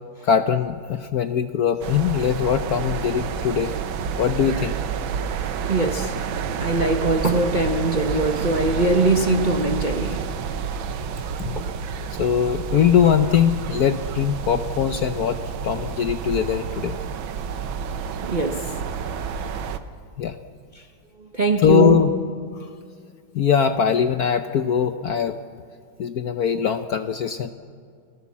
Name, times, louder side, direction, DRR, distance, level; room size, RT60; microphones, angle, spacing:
voice 1, 0.2-3.7 4.2-4.8 11.4-11.6 12.1-15.4 15.6-17.0 20.2-20.4 21.6-22.1 22.6-22.7 23.3-25.4 26.0-27.5, left 8 dB, 60° left, 8 dB, 1.0 m, -21 dB
sound 1, 1.8-19.8, right 6 dB, 75° right, 1.7 m, -29 dB
voice 2, 5.7-6.1 6.6-10.2 11.6-11.7 17.6-17.7 18.3-18.6 21.3-22.0, right 2 dB, 30° right, 4 dB, 0.9 m, -21 dB
29.5 x 17.5 x 7.3 m, 2.1 s
omnidirectional pair, 2.2 m